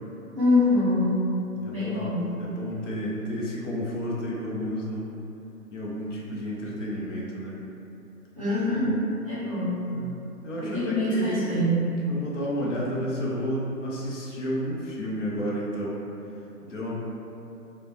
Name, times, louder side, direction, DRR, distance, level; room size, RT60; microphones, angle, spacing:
voice 1, 0.4-1.2 1.7-2.3 8.3-9.8 10.6-11.9, left 1 dB, 25° right, -15 dB, 0.4 m, -24 dB
voice 2, 1.6-5.1 5.7-7.5 9.9-10.1 10.4-11.3 12.1-16.0 16.7-16.9, equal, 50° left, -5 dB, 0.5 m, -31 dB
2.2 x 2.1 x 3.0 m, 2.8 s
hypercardioid pair, 150°, 47 cm